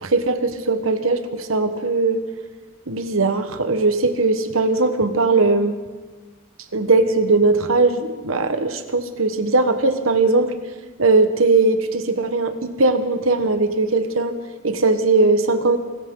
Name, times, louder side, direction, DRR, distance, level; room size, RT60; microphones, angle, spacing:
voice 1, 0.0-2.2 2.9-5.8 6.7-10.5 11.0-14.3 14.6-15.8, right 3 dB, 85° right, 9 dB, 1.3 m, -19 dB
25.0 x 14.0 x 3.9 m, 1.4 s
head